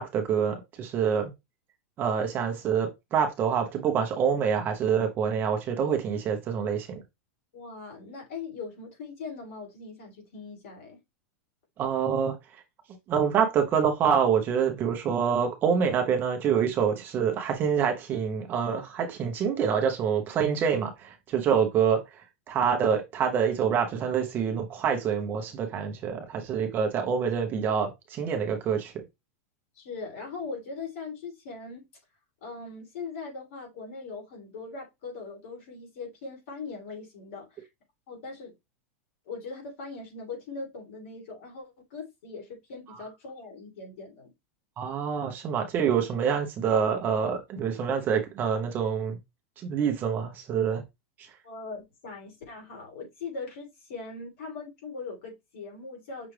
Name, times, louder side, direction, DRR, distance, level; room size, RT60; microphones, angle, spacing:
voice 1, 0.0-1.3 2.0-7.0 11.8-12.4 13.1-22.0 22.5-28.9 44.8-49.2 49.6-50.8, right 7 dB, 25° right, 0.7 m, -26 dB
voice 2, 7.5-11.0 29.7-31.8 32.4-37.6 38.1-38.5 39.3-44.3 51.4-56.3, left 4 dB, 70° left, 2.8 m, -40 dB
5.9 x 2.4 x 3.2 m
supercardioid pair, 160°, 8 cm